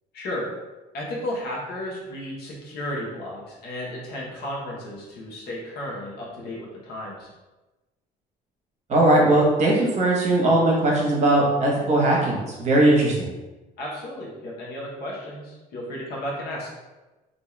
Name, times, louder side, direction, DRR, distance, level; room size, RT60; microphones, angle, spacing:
voice 1, 0.1-0.5 0.9-7.3 13.8-16.7, left 1 dB, 70° left, -4 dB, 1.0 m, -33 dB
voice 2, 8.9-13.3, right 1 dB, 40° right, -2 dB, 0.9 m, -19 dB
2.6 x 2.3 x 3.1 m, 1.1 s
cardioid pair, 110°, 17 cm